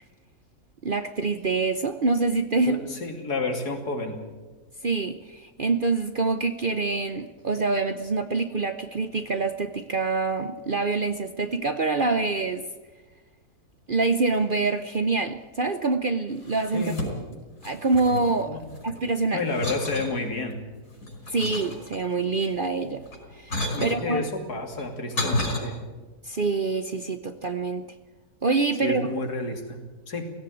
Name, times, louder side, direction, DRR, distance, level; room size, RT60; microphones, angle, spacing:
voice 1, 0.8-2.8 4.8-12.6 13.9-16.9 17.6-18.6 18.8-19.4 21.3-23.0 23.3-24.3 26.2-27.8 28.4-29.1, right 3 dB, 45° right, 9 dB, 0.8 m, -26 dB
voice 2, 2.7-4.2 16.7-17.0 18.5-18.6 19.3-20.6 23.7-25.8 28.8-29.8 30.1-30.2, left 3 dB, 75° left, 4 dB, 3.3 m, -30 dB
sound 1, 16.4-17.4 17.6-19.0 19.5-20.1 20.7-22.2 23.0-24.0 24.7-25.6, left 1 dB, 60° left, 5.3 m, -31 dB
17.0 x 17.0 x 9.3 m, 1.3 s
omnidirectional pair, 1.7 m